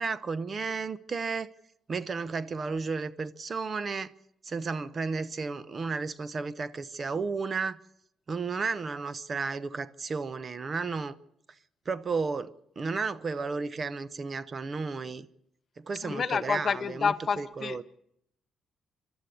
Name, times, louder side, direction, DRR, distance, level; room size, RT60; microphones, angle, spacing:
voice 1, 0.0-1.5 1.9-4.1 4.4-7.8 8.3-11.2 11.9-15.3 15.8-17.8, right 4 dB, 40° right, 0.9 m, -33 dB
voice 2, 16.0-17.8, left 6 dB, 50° left, 1.1 m, -29 dB
26.0 x 12.0 x 8.4 m
cardioid pair, 90°, 0 cm